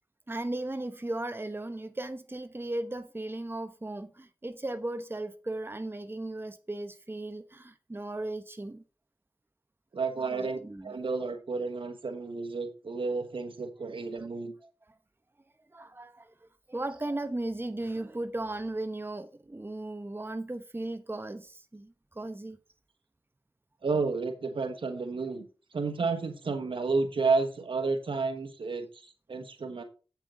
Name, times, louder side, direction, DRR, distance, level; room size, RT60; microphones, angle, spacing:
voice 1, 0.3-8.8 10.3-10.9 14.6-14.7 15.7-22.6, right 2 dB, 25° right, 1.0 m, -36 dB
voice 2, 9.9-14.5 23.8-25.5 25.7-29.8, right 4 dB, 80° right, 1.3 m, -31 dB
8.2 x 7.5 x 3.8 m
cardioid pair, 50°, 9 cm